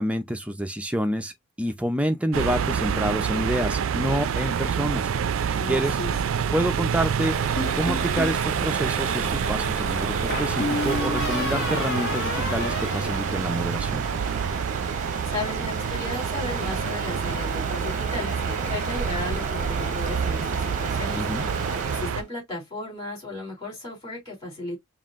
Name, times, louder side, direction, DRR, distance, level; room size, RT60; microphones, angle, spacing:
voice 1, 0.0-1.3 1.6-5.1 5.5-6.0 6.5-7.4 7.8-14.1 21.2-21.5, equal, 5° right, 0.5 m, -28 dB
sound 1, 2.3-22.2, right 7 dB, 70° right, 0.4 m, -27 dB
voice 2, 5.5-6.1 14.9-21.2 21.8-24.8, left 2 dB, 20° left, 3.0 m, -35 dB
Stream, 7.2-22.3, right 4 dB, 35° right, 0.9 m, -33 dB
sound 2, 7.6-8.4 10.3-13.9, left 3 dB, 50° left, 1.0 m, -31 dB
5.5 x 2.5 x 2.4 m
head